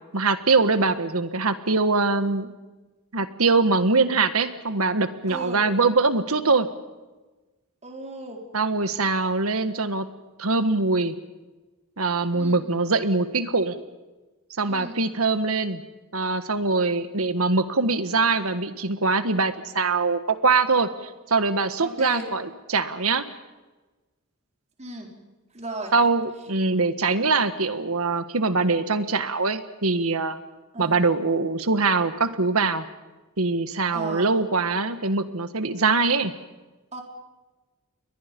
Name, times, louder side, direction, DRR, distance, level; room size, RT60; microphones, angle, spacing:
voice 1, 0.1-2.5 3.1-6.7 8.5-10.1 10.4-11.1 12.0-13.8 14.6-15.8 16.1-20.9 21.3-23.3 25.9-30.4 30.8-32.8 33.4-36.3, right 3 dB, 75° right, 10 dB, 1.6 m, -23 dB
voice 2, 5.3-5.6 7.8-8.4 12.3-12.6 14.7-15.0 21.8-22.3 24.8-25.1 25.5-25.9 30.7-31.0 33.9-34.3 36.9-37.0, right 2 dB, 30° right, 1 dB, 4.3 m, -35 dB
29.5 x 22.5 x 5.4 m, 1.2 s
head